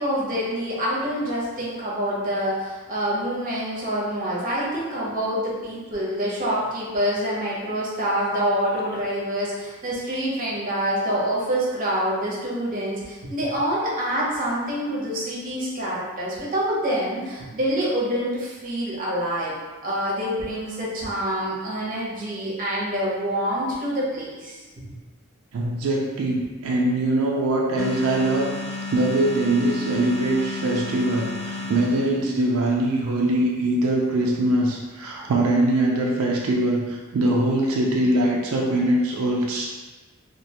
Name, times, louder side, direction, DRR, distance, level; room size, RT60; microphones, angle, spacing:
voice 1, 0.0-19.5 19.8-24.6, equal, 40° right, -6 dB, 0.7 m, -26 dB
voice 2, 25.5-39.7, right 1 dB, 90° right, -1 dB, 0.4 m, -22 dB
sound 1, 27.8-32.5, left 3 dB, 70° left, 0.3 m, -33 dB
2.4 x 2.2 x 2.8 m, 1.3 s
head